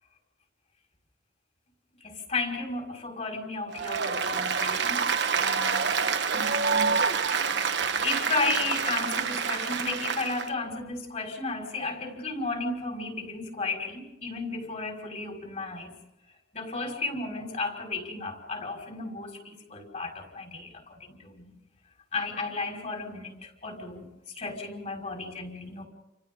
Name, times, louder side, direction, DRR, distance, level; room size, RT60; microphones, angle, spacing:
voice 1, 2.0-5.1 5.4-5.9 6.3-7.0 7.3-7.6 8.0-15.9 16.5-21.5 22.1-24.1 24.3-25.8, left 3 dB, 40° left, 1 dB, 5.3 m, -34 dB
Applause, 3.7-10.5, right 5 dB, 75° right, 1.3 m, -27 dB
29.5 x 28.5 x 3.9 m, 0.94 s
head